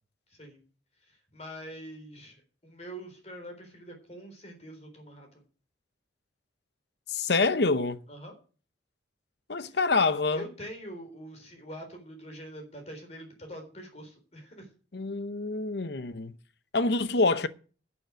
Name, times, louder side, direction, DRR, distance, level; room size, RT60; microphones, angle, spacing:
voice 1, 0.3-0.6 1.0-5.4 8.1-8.3 9.7-9.8 10.3-14.7, equal, 35° left, 3.9 m, -44 dB
voice 2, 7.1-8.0 9.5-10.4 14.9-16.3 16.7-17.5, left 3 dB, 60° left, 0.8 m, -26 dB
11.5 x 7.0 x 8.0 m
head